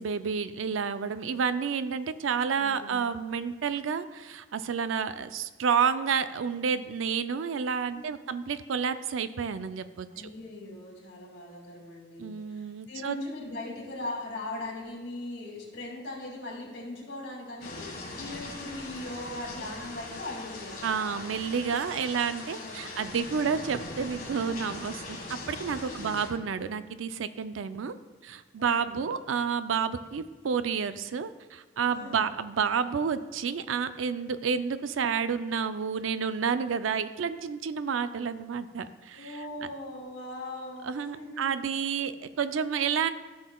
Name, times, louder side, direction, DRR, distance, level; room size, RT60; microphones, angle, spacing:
voice 1, 0.0-10.3 12.2-13.2 20.8-27.9 28.2-39.5 40.8-42.1 42.4-43.1, right 6 dB, 85° right, 12 dB, 0.4 m, -30 dB
voice 2, 2.6-3.0 7.9-8.3 10.1-21.2 22.6-23.1 25.8-26.2 28.6-29.0 31.9-32.3 39.1-41.5, left 2 dB, 65° left, -2 dB, 2.3 m, -40 dB
sound 1, 17.6-26.3, left 2 dB, 45° left, 1.6 m, -41 dB
14.5 x 6.3 x 2.3 m, 1.4 s
head